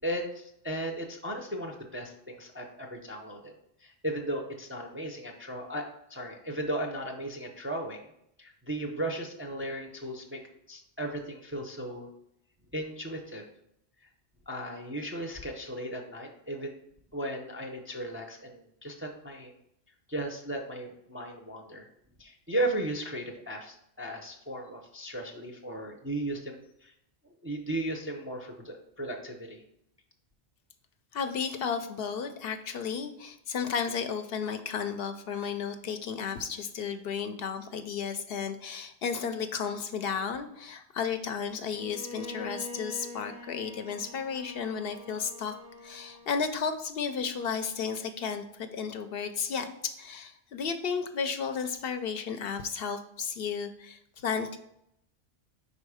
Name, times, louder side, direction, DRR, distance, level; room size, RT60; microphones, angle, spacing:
voice 1, 0.0-3.5 3.8-8.1 8.4-12.1 12.7-13.5 14.0-14.1 14.5-16.7 17.1-19.5 20.1-21.9 22.2-26.9 27.4-29.6, right 1 dB, 15° right, 1 dB, 0.4 m, -36 dB
voice 2, 31.1-45.5 45.8-54.6, left 6 dB, 65° left, 8 dB, 0.7 m, -33 dB
Bowed string instrument, 41.7-46.7, left 2 dB, 20° left, 0.7 m, -45 dB
5.3 x 4.1 x 4.8 m, 0.77 s
omnidirectional pair, 1.1 m